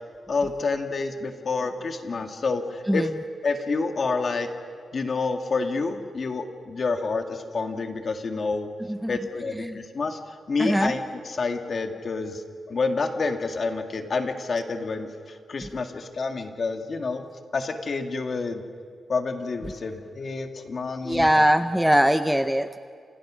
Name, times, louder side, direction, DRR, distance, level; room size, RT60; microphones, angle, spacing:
voice 1, 0.3-3.1 3.4-4.5 4.9-8.7 9.1-17.2 17.5-18.6 19.1-21.5, left 4 dB, 40° left, 5 dB, 1.9 m, -28 dB
voice 2, 10.6-11.0 21.0-22.8, equal, ahead, 9 dB, 0.6 m, -21 dB
29.0 x 27.5 x 6.2 m, 2.1 s
wide cardioid pair, 175°, 0 cm